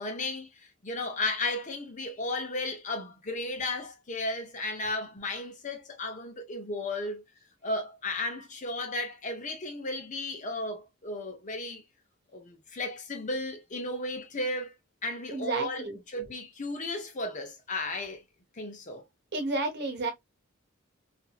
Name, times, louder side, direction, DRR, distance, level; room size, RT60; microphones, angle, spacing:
voice 1, 0.0-7.2 7.6-11.8 12.3-14.7 15.0-18.2 18.6-19.0, left 2 dB, 40° left, 0.7 m, -34 dB
voice 2, 15.3-16.0 19.3-20.1, right 3 dB, 60° right, 1.0 m, -31 dB
2.7 x 2.5 x 2.3 m
head